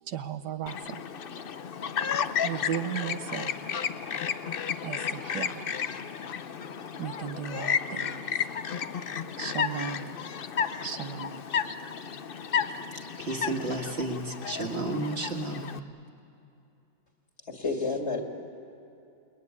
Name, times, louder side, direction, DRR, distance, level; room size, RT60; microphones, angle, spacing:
voice 1, 0.1-1.0 2.4-3.5 4.2-4.3 4.8-5.8 7.0-8.3 9.4-10.1 10.8-11.4, right 9 dB, 75° right, 9 dB, 1.4 m, -36 dB
Chirp tweet, 0.7-15.8, left 7 dB, 70° left, 0.5 m, -33 dB
voice 2, 13.2-15.8, right 2 dB, 35° right, 2 dB, 2.0 m, -32 dB
voice 3, 17.5-18.2, left 3 dB, 40° left, 2 dB, 2.7 m, -30 dB
29.0 x 20.5 x 9.6 m, 2.8 s
omnidirectional pair, 1.9 m